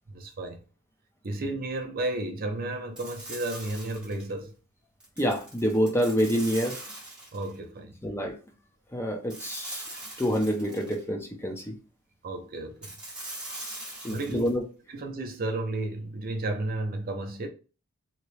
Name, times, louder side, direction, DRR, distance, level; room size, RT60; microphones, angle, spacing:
voice 1, 0.1-0.6 1.2-4.5 7.3-8.0 12.2-12.9 14.1-14.4 14.9-17.5, right 2 dB, 40° right, 0.5 m, -33 dB
sound 1, 3.0-4.3 5.0-7.5 9.3-11.0 12.8-14.5, right 1 dB, 5° right, 1.2 m, -41 dB
voice 2, 5.2-6.8 8.0-8.4 8.9-9.8 10.2-11.8 14.0-14.7, equal, 10° left, 0.5 m, -27 dB
2.9 x 2.8 x 3.1 m
head